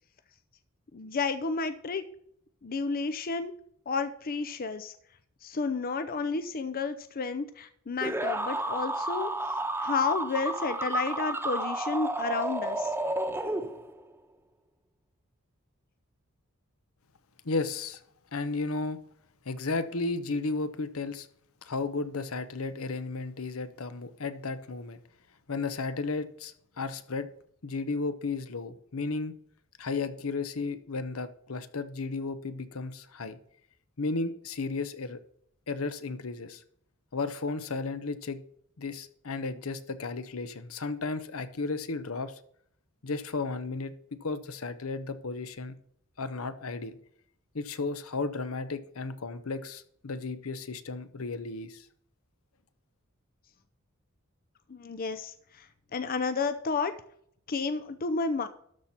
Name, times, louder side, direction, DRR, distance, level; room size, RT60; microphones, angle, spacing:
voice 1, 0.9-2.0 2.6-3.5 3.9-4.9 5.4-9.3 9.8-12.9 54.7-56.9 57.5-58.5, left 4 dB, 45° left, 10 dB, 0.6 m, -31 dB
sound 1, 8.0-14.1, right 1 dB, 10° right, 1.0 m, -31 dB
voice 2, 17.4-18.0 18.3-19.0 19.4-21.3 21.6-25.0 25.5-27.3 27.6-29.3 29.8-33.4 34.0-35.2 35.7-36.6 37.1-38.4 38.8-42.4 43.0-45.7 46.2-47.0 47.5-51.9, left 3 dB, 75° left, 12 dB, 0.9 m, -34 dB
13.0 x 4.4 x 7.1 m, 0.66 s
head